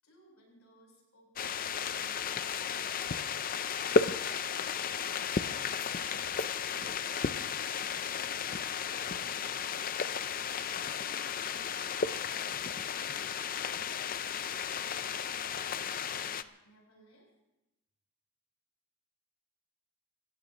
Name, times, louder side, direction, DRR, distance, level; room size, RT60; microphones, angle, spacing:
voice 1, 0.0-3.5 6.8-10.6 11.0-15.6 16.0-17.3, equal, 85° left, -1 dB, 7.6 m, -62 dB
sound 1, 1.4-16.4, left 6 dB, 40° left, 0.5 m, -34 dB
27.5 x 16.5 x 3.0 m, 0.94 s
head